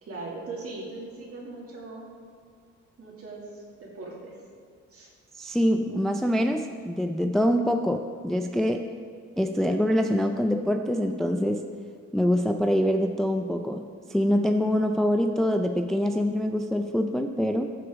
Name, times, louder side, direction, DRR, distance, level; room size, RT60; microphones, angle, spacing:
voice 1, 0.0-2.1 3.0-4.4 4.9-5.1, right 3 dB, 50° right, -2 dB, 2.3 m, -39 dB
voice 2, 5.3-8.9 9.4-11.6 12.1-17.7, equal, ahead, 5 dB, 0.4 m, -25 dB
14.5 x 5.0 x 3.6 m, 2.2 s
cardioid pair, 90°, 30 cm